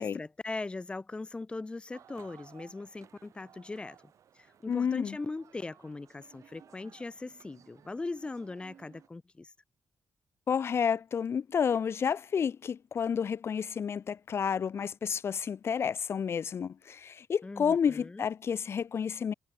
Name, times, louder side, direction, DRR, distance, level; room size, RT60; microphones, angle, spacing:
voice 1, 0.0-4.0 4.3-9.5 17.4-18.3, left 3 dB, 15° left, 1.6 m, -40 dB
sound 1, 1.9-9.1, right 9 dB, 60° right, 4.2 m, -58 dB
voice 2, 4.7-5.2 10.5-19.3, left 7 dB, 45° left, 1.3 m, -30 dB
cardioid pair, 145°, 6 cm